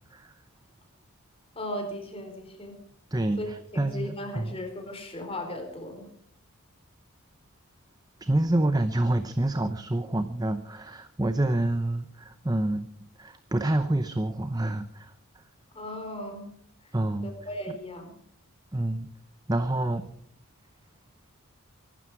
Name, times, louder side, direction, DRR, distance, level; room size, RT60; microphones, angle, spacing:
voice 1, 1.5-2.8 3.4-3.5 3.7-6.1 15.7-16.5 17.2-18.2, left 1 dB, 25° left, 4 dB, 4.2 m, -37 dB
voice 2, 3.1-4.6 8.2-12.9 13.2-15.1 16.9-17.3 18.7-19.1 19.5-20.1, right 1 dB, 15° right, 10 dB, 0.7 m, -27 dB
24.5 x 12.5 x 4.8 m, 0.65 s
head